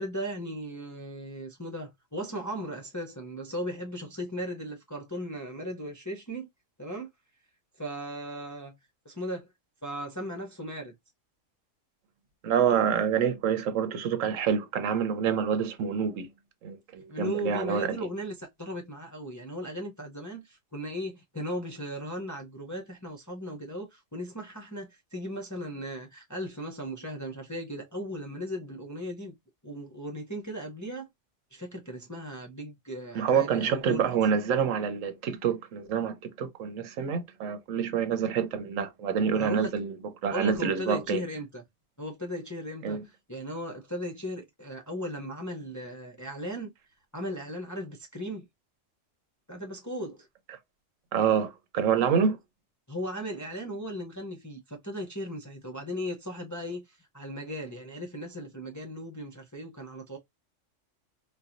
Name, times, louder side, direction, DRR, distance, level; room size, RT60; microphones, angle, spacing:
voice 1, 0.0-6.5 6.8-7.1 7.8-8.7 9.0-9.5 9.8-10.9 17.1-29.3 29.6-31.1 31.5-34.1 39.3-39.7 40.3-41.6 42.0-43.0 43.3-46.7 47.1-48.5 49.5-50.3 52.9-60.2, equal, 20° left, 0.5 m, -37 dB
voice 2, 12.4-16.3 16.6-18.0 33.1-40.0 40.2-41.2 42.8-43.0 50.5-50.6 51.1-52.4, right 7 dB, 85° right, 1.1 m, -27 dB
4.3 x 2.2 x 2.4 m
omnidirectional pair, 1.3 m